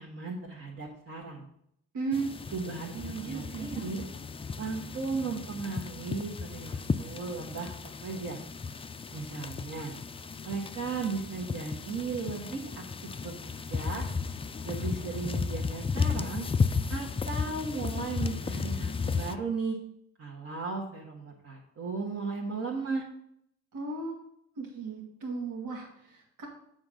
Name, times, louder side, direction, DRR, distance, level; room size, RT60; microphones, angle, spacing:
voice 1, 0.0-1.4 2.5-4.0 4.6-7.7 8.0-8.4 9.1-9.9 10.4-12.8 13.2-13.3 13.7-14.0 14.6-16.4 16.9-19.8 20.2-23.1, right 4 dB, 50° right, -3 dB, 1.5 m, -36 dB
voice 2, 1.9-2.3 2.9-3.8 23.7-24.2 24.6-26.5, right 4 dB, 85° right, 0 dB, 2.3 m, -35 dB
sound 1, 2.1-19.3, left 5 dB, 20° left, 0.4 m, -34 dB
7.3 x 3.9 x 6.4 m, 0.73 s
cardioid pair, 90°, 30 cm